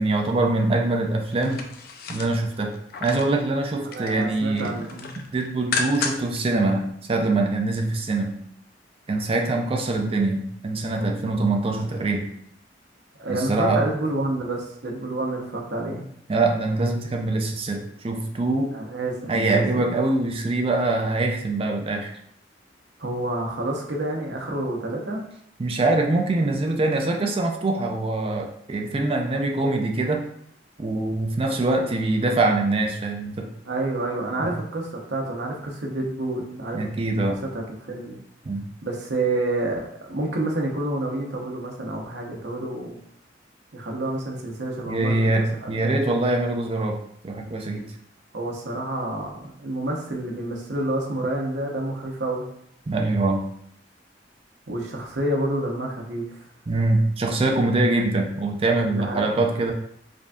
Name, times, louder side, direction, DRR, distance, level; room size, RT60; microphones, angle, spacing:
voice 1, 0.0-1.7 2.1-4.8 5.3-8.4 9.1-12.3 13.3-13.8 16.3-18.7 19.3-22.1 25.6-30.3 30.8-33.5 34.4-34.5 36.7-37.4 38.4-38.6 44.8-47.0 47.2-47.9 52.9-53.4 56.7-59.7, right 2 dB, 30° right, 2 dB, 0.4 m, -23 dB
sound 1, 1.3-3.4 3.7-4.2 4.6-6.4 6.8-6.9, left 4 dB, 55° left, 0.4 m, -32 dB
voice 2, 3.8-5.2 13.2-16.1 18.7-19.9 23.0-25.2 33.7-36.9 37.3-38.2 38.8-43.0 43.7-46.2 48.3-52.5 54.7-56.4 58.8-59.3, right 2 dB, 65° right, 0 dB, 0.8 m, -29 dB
5.0 x 2.6 x 2.3 m, 0.71 s
head